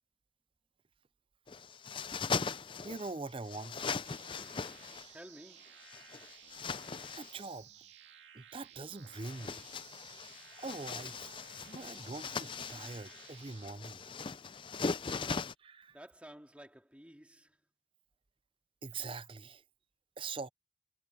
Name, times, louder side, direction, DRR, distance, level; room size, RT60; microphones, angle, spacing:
sound 1, 1.5-3.1 3.4-5.1 5.8-7.4 9.0-15.5, left 5 dB, 30° left, 0.5 m, -40 dB
voice 1, 2.8-3.9 6.7-6.8 7.1-7.7 8.3-9.6 10.6-11.4 11.7-14.0 15.6-16.0 18.8-19.6 20.2-20.5, right 3 dB, 30° right, 0.6 m, -43 dB
sound 2, 4.0-13.7, right 9 dB, 90° right, 2.3 m, -57 dB
voice 2, 5.1-5.8 15.9-17.6, equal, 10° right, 3.1 m, -53 dB
head